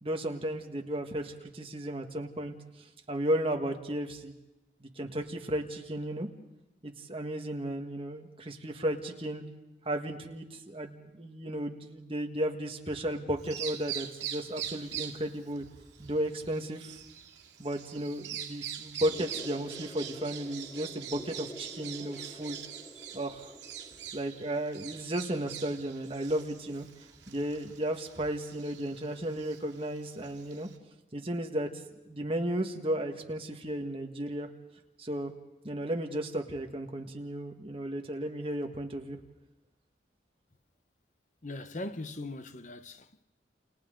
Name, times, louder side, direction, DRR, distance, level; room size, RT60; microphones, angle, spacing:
voice 1, 0.0-2.5 3.1-4.3 4.8-6.3 6.8-9.4 9.8-15.6 16.0-17.0 17.6-22.6 23.1-23.5 24.1-26.9 27.3-30.7 31.1-31.7 32.1-34.5 35.0-35.3 35.6-39.2, right 1 dB, 30° right, 1.7 m, -34 dB
Bird vocalization bird call bird song, 13.4-30.8, right 9 dB, 85° right, 2.0 m, -43 dB
sound 1, 19.1-24.1, equal, 15° left, 0.9 m, -48 dB
voice 2, 41.4-43.2, left 2 dB, 45° left, 0.9 m, -40 dB
29.0 x 28.5 x 3.9 m
head